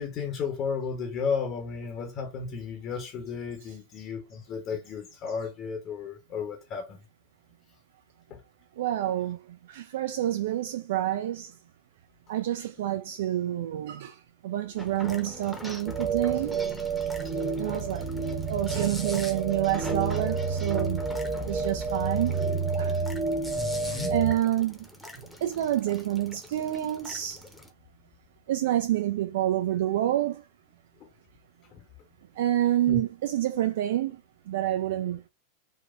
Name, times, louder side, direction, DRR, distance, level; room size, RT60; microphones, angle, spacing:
voice 1, 0.0-7.0 8.3-8.4 23.6-24.2 32.9-33.0, left 5 dB, 35° left, 0.7 m, -33 dB
voice 2, 8.8-9.4 9.7-11.5 12.3-14.2 14.4-16.6 17.6-18.1 18.5-21.0 21.5-22.4 22.8-23.0 23.8-24.8 25.4-27.4 28.5-30.4 32.4-34.2 34.5-35.2, right 13 dB, 55° right, 0.3 m, -28 dB
sound 1, 14.8-27.7, left 1 dB, ahead, 0.8 m, -43 dB
sound 2, 15.9-24.3, right 4 dB, 30° right, 0.7 m, -29 dB
4.2 x 2.1 x 2.4 m
figure-of-eight pair, 90°, 0 cm